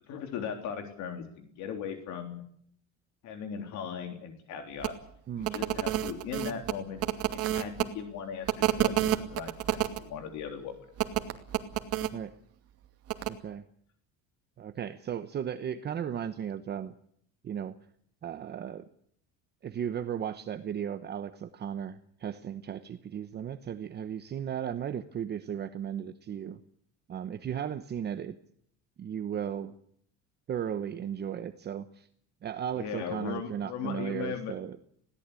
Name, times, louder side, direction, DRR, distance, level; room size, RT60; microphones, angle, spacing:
voice 1, 0.1-2.4 3.2-5.0 5.5-7.0 7.3-10.7 32.8-34.6, left 7 dB, 65° left, 6 dB, 3.5 m, -38 dB
sound 1, 4.8-4.9 5.4-7.8 8.5-10.0 11.0-12.1 13.1-13.3, right 12 dB, 50° right, 2.4 m, -29 dB
voice 2, 13.3-13.7 14.6-16.9 17.4-17.8 18.2-18.9 19.6-26.6 27.1-28.3 29.0-29.7 30.5-32.1 32.4-34.8, right 9 dB, 30° right, 10 dB, 1.0 m, -35 dB
21.0 x 17.5 x 8.4 m, 0.65 s
cardioid pair, 150°, 31 cm